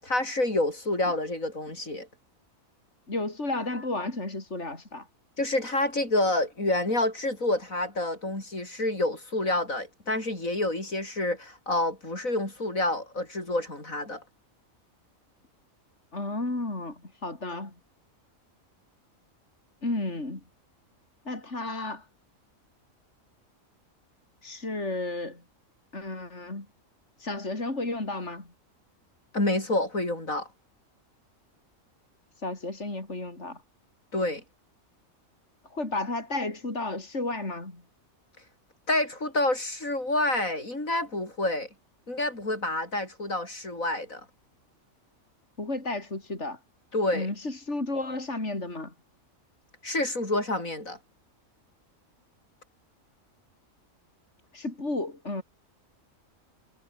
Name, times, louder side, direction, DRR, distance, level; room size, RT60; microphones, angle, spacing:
voice 1, 0.0-2.1 5.4-14.2 29.3-30.5 34.1-34.4 38.9-41.7 42.1-44.2 46.9-47.3 49.8-51.0, left 2 dB, 80° left, 7.5 m, -28 dB
voice 2, 3.1-5.1 16.1-17.7 19.8-20.4 21.2-22.0 24.4-25.4 25.9-26.7 27.2-28.5 32.4-33.6 35.7-37.8 45.6-46.6 47.1-48.9 54.5-55.4, left 2 dB, 55° left, 5.1 m, -32 dB
omnidirectional pair, 1.4 m